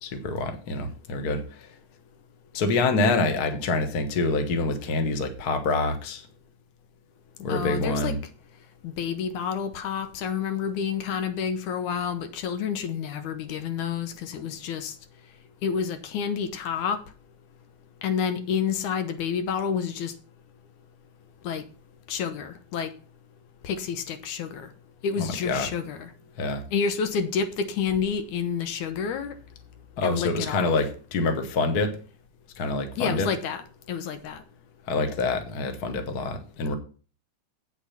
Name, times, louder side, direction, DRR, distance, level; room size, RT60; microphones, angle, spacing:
voice 1, 0.0-1.6 2.5-6.3 7.4-8.2 25.5-25.7 26.4-26.6 30.0-31.9 32.6-33.3 34.9-36.7, left 3 dB, 40° left, 1.5 m, -26 dB
voice 2, 7.5-8.2 8.8-14.9 15.6-17.0 18.0-20.1 21.4-21.6 22.1-22.9 23.6-24.7 25.0-26.1 26.7-29.3 30.0-30.8 33.0-34.4, left 7 dB, 75° left, 2.4 m, -29 dB
8.6 x 6.9 x 5.7 m
omnidirectional pair, 3.6 m